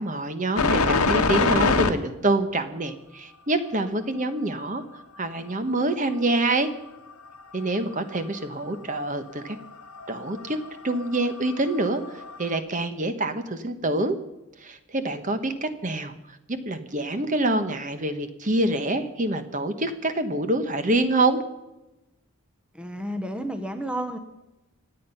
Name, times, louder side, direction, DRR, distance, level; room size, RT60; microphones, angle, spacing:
voice 1, 0.0-4.8 5.2-6.7 7.5-9.6 10.1-10.6 10.8-14.2 14.6-16.1 16.5-21.4, right 2 dB, 35° right, 9 dB, 1.1 m, -26 dB
sound 1, 0.6-1.9 4.7-4.8 6.6-6.7 7.1-8.9 9.4-12.6, left 4 dB, 80° left, 1.3 m, -25 dB
voice 2, 22.7-24.2, right 1 dB, 5° right, 7 dB, 0.9 m, -31 dB
26.0 x 8.9 x 5.7 m, 0.96 s
head